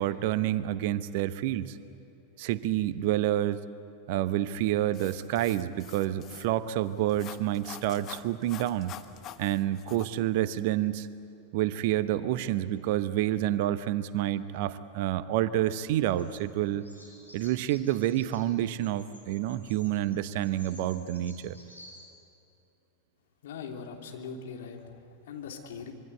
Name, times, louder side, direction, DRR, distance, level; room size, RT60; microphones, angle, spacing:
voice 1, 0.0-1.8 2.4-3.6 4.1-8.9 9.4-11.1 11.5-16.9 17.3-21.6, right 13 dB, 50° right, 14 dB, 0.9 m, -28 dB
sound 1, 4.9-10.1, left 11 dB, 35° left, 1.1 m, -47 dB
Bird vocalization bird call bird song, 16.2-22.0, left 1 dB, 85° left, 5.9 m, -54 dB
voice 2, 23.4-25.9, left 6 dB, 55° left, 2 dB, 3.1 m, -41 dB
25.5 x 24.0 x 8.1 m, 2.9 s
figure-of-eight pair, 90°, 0 cm